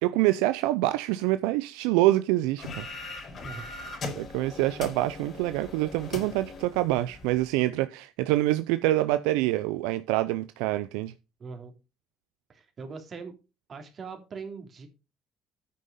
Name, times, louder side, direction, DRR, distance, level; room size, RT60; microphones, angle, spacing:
voice 1, 0.0-2.9 4.2-11.1, right 16 dB, 85° right, 0.5 m, -26 dB
sound 1, 2.6-7.5, left 3 dB, 50° left, 5.1 m, -40 dB
voice 2, 3.3-3.7 11.4-11.7 12.5-13.4 13.7-14.9, right 5 dB, 50° right, 3.2 m, -41 dB
9.3 x 6.3 x 5.6 m
supercardioid pair, 65°, 0 cm